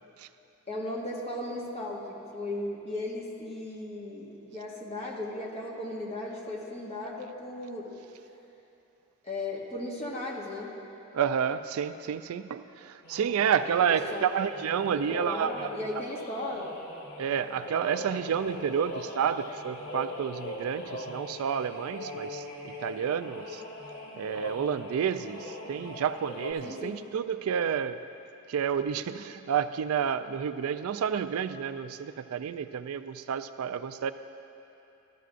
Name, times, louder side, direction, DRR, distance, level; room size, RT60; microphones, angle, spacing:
voice 1, 0.7-7.9 9.2-10.7 13.7-13.8 14.1-14.3 14.9-16.7 26.6-27.0, left 1 dB, 30° left, -4 dB, 1.4 m, -36 dB
voice 2, 11.1-15.7 17.2-23.6 24.1-28.0 28.5-34.1, right 7 dB, 90° right, 11 dB, 0.4 m, -30 dB
sound 1, 13.0-26.5, left 1 dB, 85° left, 1.4 m, -41 dB
14.0 x 12.5 x 2.5 m, 2.9 s
head